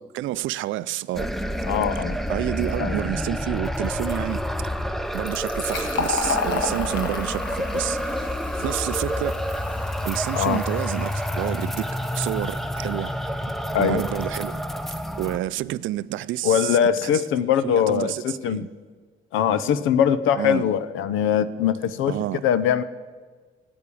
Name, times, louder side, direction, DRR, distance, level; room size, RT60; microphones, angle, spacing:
voice 1, 0.1-1.3 2.3-4.4 5.1-8.3 8.6-9.4 10.0-11.8 12.2-13.1 13.7-14.6 15.2-17.2 17.6-18.7 20.3-20.6 22.1-22.4, right 15 dB, 80° right, 0.4 m, -29 dB
sound 1, 1.1-15.4, equal, ahead, 0.7 m, -28 dB
voice 2, 1.7-2.2 2.8-3.0 10.3-10.6 13.7-14.0 16.4-18.7 19.3-22.1 22.4-22.8, left 9 dB, 90° left, 0.7 m, -22 dB
Fill (with liquid), 5.1-12.5, left 5 dB, 70° left, 1.7 m, -33 dB
12.0 x 8.8 x 8.4 m
cardioid pair, 90°, 20 cm